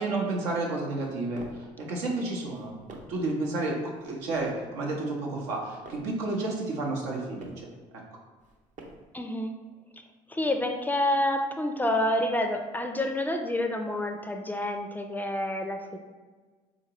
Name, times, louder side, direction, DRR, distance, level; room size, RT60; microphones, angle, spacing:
voice 1, 0.0-2.7 3.1-7.7, right 2 dB, 85° right, -1 dB, 0.8 m, -31 dB
sound 1, 0.9-1.7 2.4-3.3 3.9-4.6 5.3-6.2 6.9-7.7 8.4-9.2, right 2 dB, 50° right, 0.7 m, -49 dB
voice 2, 9.1-9.6 10.3-16.0, left 1 dB, 10° left, 5 dB, 0.4 m, -28 dB
3.8 x 2.9 x 2.8 m, 1.4 s
supercardioid pair, 80°, 16 cm